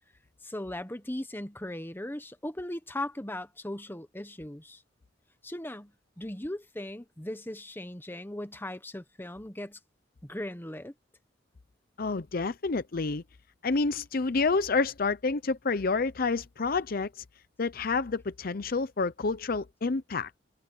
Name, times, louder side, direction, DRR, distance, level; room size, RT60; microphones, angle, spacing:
voice 1, 0.4-4.8 5.4-9.8 10.2-10.9, left 1 dB, 10° left, 1.2 m, -38 dB
voice 2, 12.0-13.2 13.6-17.2 17.6-20.3, left 4 dB, 50° left, 0.7 m, -29 dB
head